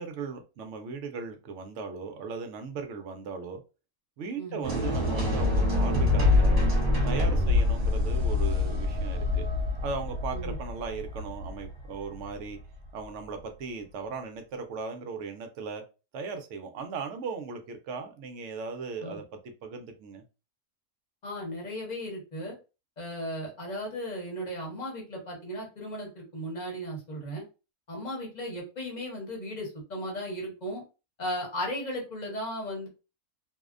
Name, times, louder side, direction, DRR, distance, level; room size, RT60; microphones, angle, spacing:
voice 1, 0.0-3.6 4.2-6.6 7.0-9.4 9.8-12.6 12.9-15.8 16.1-20.2, right 4 dB, 70° right, 0.7 m, -37 dB
sound 1, 4.6-12.7, left 2 dB, 45° right, 1.0 m, -26 dB
voice 2, 21.2-22.5 23.0-27.4 27.9-30.8 31.2-32.9, equal, 35° left, 0.8 m, -36 dB
2.7 x 2.1 x 2.4 m
omnidirectional pair, 1.6 m